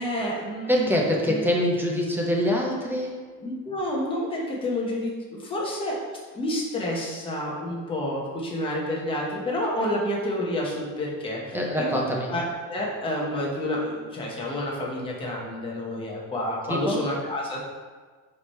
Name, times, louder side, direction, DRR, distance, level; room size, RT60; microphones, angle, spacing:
voice 1, 0.0-1.5 3.4-6.0 6.3-12.0 12.3-17.6, left 1 dB, 15° left, -3 dB, 1.1 m, -29 dB
voice 2, 0.7-3.2 11.5-12.3 16.7-17.0, equal, 5° right, -2 dB, 0.5 m, -24 dB
4.9 x 4.8 x 4.3 m, 1.5 s
cardioid pair, 165°, 33 cm